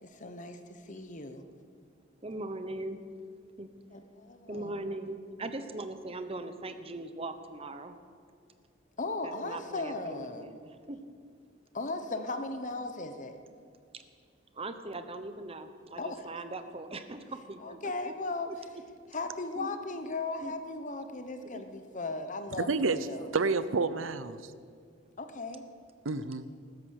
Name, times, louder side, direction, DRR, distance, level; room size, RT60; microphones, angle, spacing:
voice 1, 0.0-1.4 3.9-4.8 9.0-10.6 11.7-13.4 16.0-16.3 17.6-18.5 19.1-23.3 25.2-25.6, left 3 dB, 40° left, 8 dB, 1.0 m, -37 dB
voice 2, 2.2-3.0 3.6-3.7 4.5-8.0 9.2-11.0 13.9-14.0 14.5-18.1 18.5-18.6 19.6-19.7 20.4-20.5 21.4-21.6, right 2 dB, 30° right, 9 dB, 1.0 m, -40 dB
voice 3, 22.6-23.0 23.3-24.5 26.0-26.5, right 4 dB, 90° right, 14 dB, 0.8 m, -29 dB
16.0 x 13.5 x 6.6 m, 2.2 s
head